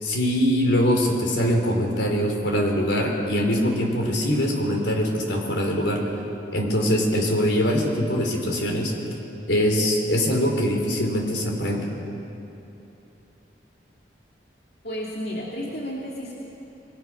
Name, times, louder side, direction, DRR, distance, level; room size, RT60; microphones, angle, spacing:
voice 1, 0.0-6.0 6.5-8.9 9.5-11.8, equal, 85° left, 1 dB, 3.9 m, -23 dB
voice 2, 14.8-16.3, equal, 60° left, -3 dB, 2.4 m, -32 dB
25.5 x 21.5 x 6.3 m, 2.9 s
head